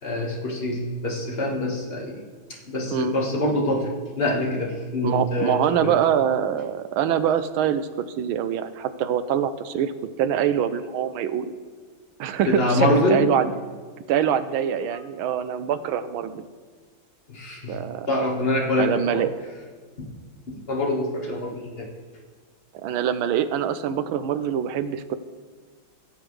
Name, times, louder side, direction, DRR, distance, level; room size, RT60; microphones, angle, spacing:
voice 1, 0.0-2.2 2.6-3.9 4.2-6.3 12.5-13.2 17.3-17.8 18.1-19.2 20.0-20.1 20.5-21.9, left 1 dB, 30° left, -1 dB, 1.6 m, -25 dB
voice 2, 5.0-11.5 12.2-13.5 14.1-16.4 17.7-18.1 18.8-19.3 22.7-25.2, right 9 dB, 85° right, 11 dB, 1.5 m, -24 dB
17.0 x 8.0 x 3.2 m, 1.5 s
omnidirectional pair, 2.2 m